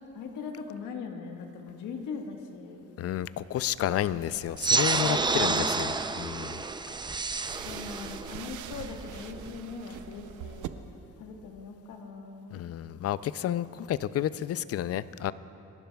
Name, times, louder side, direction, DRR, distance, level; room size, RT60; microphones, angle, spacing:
voice 1, 0.1-2.8 5.0-5.6 7.6-10.8 11.2-12.6, left 5 dB, 85° left, 3 dB, 1.4 m, -40 dB
voice 2, 3.0-6.6 12.5-15.3, left 11 dB, 55° left, 16 dB, 0.4 m, -31 dB
sound 1, 4.0-10.7, right 10 dB, 80° right, 0.6 m, -45 dB
sound 2, 4.6-9.6, right 3 dB, 15° right, 0.4 m, -29 dB
29.0 x 12.0 x 2.3 m, 2.9 s
cardioid pair, 90°, 30 cm